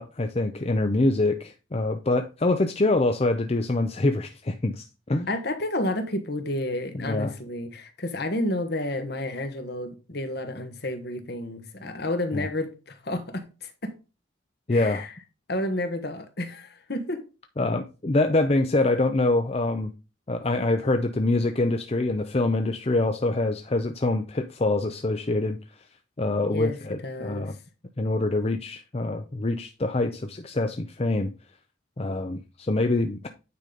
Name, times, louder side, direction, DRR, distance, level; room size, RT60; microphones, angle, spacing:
voice 1, 0.0-5.3 6.9-7.3 12.3-12.5 14.7-15.1 17.6-19.9 20.3-25.6 26.2-27.6 28.0-31.3 32.0-33.3, left 2 dB, 30° left, 0.6 m, -25 dB
voice 2, 5.3-13.9 14.7-15.1 15.5-17.2 26.5-26.8 27.0-27.6, left 1 dB, 55° left, 1.4 m, -31 dB
9.4 x 5.1 x 3.9 m
head